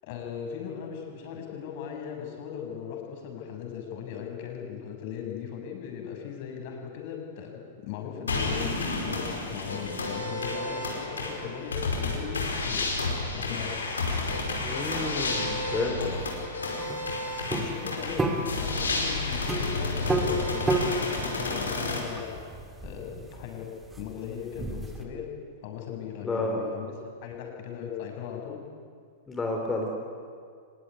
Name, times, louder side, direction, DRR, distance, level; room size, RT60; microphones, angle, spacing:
voice 1, 0.0-12.9 13.3-13.9 17.4-22.4 22.8-25.2 25.6-28.6, left 8 dB, 50° left, 1 dB, 7.0 m, -38 dB
sound 1, 8.3-22.0, left 3 dB, 75° left, 5.1 m, -31 dB
voice 2, 14.6-16.1 26.2-26.7 29.3-29.9, left 2 dB, 15° left, 1 dB, 3.8 m, -30 dB
sound 2, 16.8-25.0, right 2 dB, 10° right, 3.0 m, -32 dB
24.5 x 22.0 x 9.7 m, 2.2 s
figure-of-eight pair, 100°, 0 cm